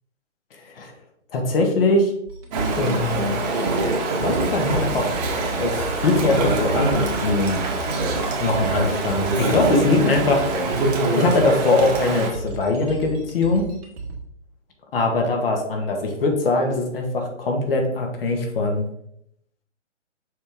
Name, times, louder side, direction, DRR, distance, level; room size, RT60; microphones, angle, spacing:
voice 1, 1.3-2.1 2.8-3.4 4.2-5.1 5.6-7.7 8.4-10.4 11.2-13.7 14.9-18.8, left 2 dB, 50° left, 2 dB, 1.6 m, -21 dB
sound 1, 2.3-14.2, right 3 dB, 55° right, 1.9 m, -33 dB
Chatter / Stream, 2.5-12.3, right 2 dB, 35° right, 1.5 m, -24 dB
6.5 x 4.4 x 3.6 m, 0.73 s
figure-of-eight pair, 140°, 37 cm